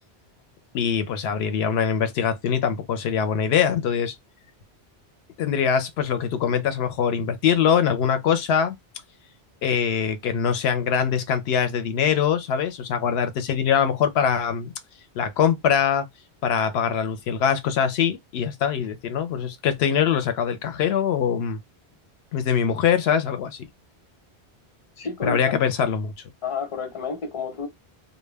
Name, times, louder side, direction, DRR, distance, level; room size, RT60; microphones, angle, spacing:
voice 1, 0.7-4.2 5.4-8.8 9.6-14.7 15.2-16.0 16.4-21.6 22.3-23.6 25.2-26.1, left 7 dB, 75° left, 0.8 m, -23 dB
voice 2, 25.0-25.5 26.4-27.7, left 5 dB, 35° left, 0.7 m, -30 dB
2.2 x 2.1 x 3.2 m
omnidirectional pair, 1.1 m